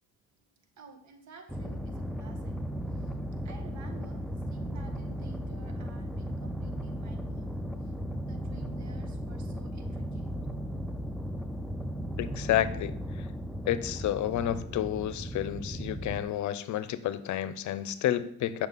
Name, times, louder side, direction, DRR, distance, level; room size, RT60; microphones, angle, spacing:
voice 1, 0.8-2.5 2.9-3.1 3.4-7.9 8.3-10.3, right 3 dB, 65° right, 5 dB, 1.5 m, -52 dB
sound 1, 1.5-16.2, equal, ahead, 0.6 m, -36 dB
voice 2, 12.2-13.3 13.7-18.7, left 12 dB, 75° left, 15 dB, 0.6 m, -30 dB
8.9 x 5.8 x 4.0 m, 0.65 s
cardioid pair, 90°, 30 cm